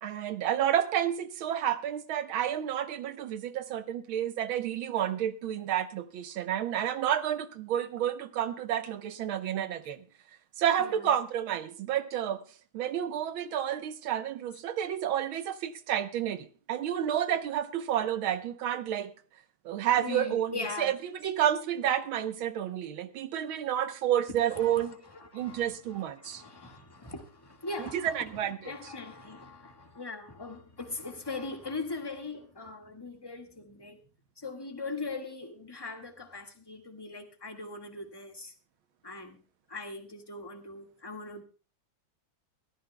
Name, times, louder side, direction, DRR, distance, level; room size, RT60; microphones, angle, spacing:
voice 1, 0.0-10.0 10.6-12.5 12.7-19.1 19.7-21.0 21.2-25.0 25.3-26.4 27.8-28.7, right 10 dB, 85° right, 1.8 m, -30 dB
voice 2, 20.0-20.9 24.5-34.0 34.4-38.5 39.0-39.4 39.7-41.4, left 3 dB, 15° left, 1.6 m, -40 dB
22.5 x 14.0 x 2.2 m
omnidirectional pair, 2.2 m